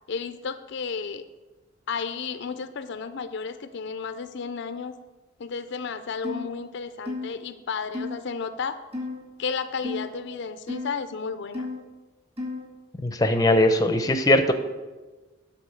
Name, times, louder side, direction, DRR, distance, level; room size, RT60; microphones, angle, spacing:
voice 1, 0.1-1.2 1.9-4.9 5.4-8.8 9.4-11.7, left 5 dB, 60° left, 11 dB, 0.5 m, -33 dB
sound 1, 6.2-6.5 7.1-7.3 7.9-8.2 8.9-9.2 9.8-10.1 10.7-10.9 11.5-11.8 12.4-12.7, left 3 dB, 30° right, 1.9 m, -32 dB
voice 2, 13.0-14.5, left 1 dB, 20° left, 8 dB, 0.6 m, -20 dB
10.5 x 4.3 x 7.7 m, 1.2 s
head